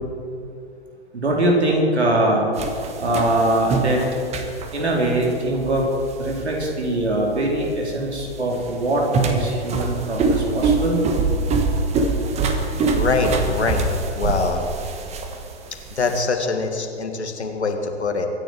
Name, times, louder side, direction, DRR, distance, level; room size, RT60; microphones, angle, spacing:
voice 1, 1.1-2.4 3.0-4.0 4.7-5.9 6.2-11.0, right 1 dB, 80° right, -2 dB, 4.2 m, -22 dB
sound 1, 2.6-16.2, right 3 dB, 20° right, 1.4 m, -25 dB
voice 2, 12.6-13.8 14.1-14.7 15.9-18.3, left 3 dB, 85° left, 4 dB, 2.2 m, -24 dB
24.0 x 10.5 x 4.8 m, 2.5 s
figure-of-eight pair, 115°, 33 cm